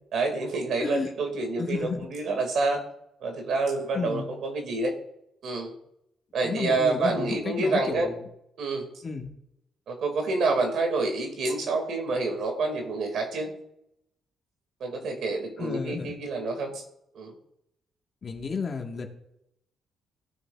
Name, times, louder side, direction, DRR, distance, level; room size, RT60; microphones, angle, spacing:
voice 1, 0.1-2.8 3.2-4.9 5.4-5.7 6.3-8.1 8.6-8.9 9.9-13.5 14.8-16.8 17.1-17.3, right 3 dB, 70° right, 3 dB, 2.2 m, -28 dB
voice 2, 0.8-1.1 1.6-2.1 3.9-4.3 6.4-8.2 9.0-9.3 15.6-16.2 18.2-19.1, left 5 dB, 40° left, 3 dB, 1.5 m, -32 dB
16.0 x 6.4 x 2.4 m, 0.80 s
cardioid pair, 90°, 0 cm